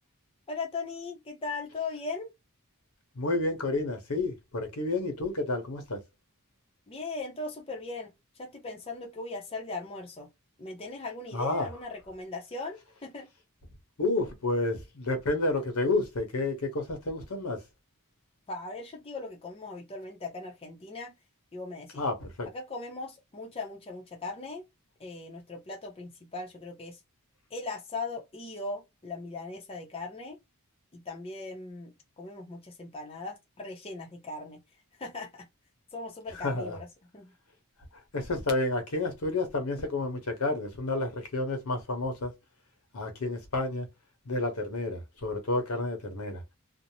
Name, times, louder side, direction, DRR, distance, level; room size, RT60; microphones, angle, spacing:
voice 1, 0.5-2.3 6.9-10.3 10.6-13.3 18.5-21.1 21.5-22.0 22.5-24.6 25.0-27.0 27.5-30.4 30.9-34.6 35.0-35.5 35.9-36.9 37.1-37.3, left 3 dB, 25° left, 0.6 m, -39 dB
voice 2, 3.1-6.0 11.3-11.7 14.0-17.6 22.0-22.5 36.4-36.8 38.1-42.3 42.9-43.9 44.2-46.4, left 2 dB, 75° left, 0.9 m, -30 dB
2.6 x 2.0 x 2.9 m
head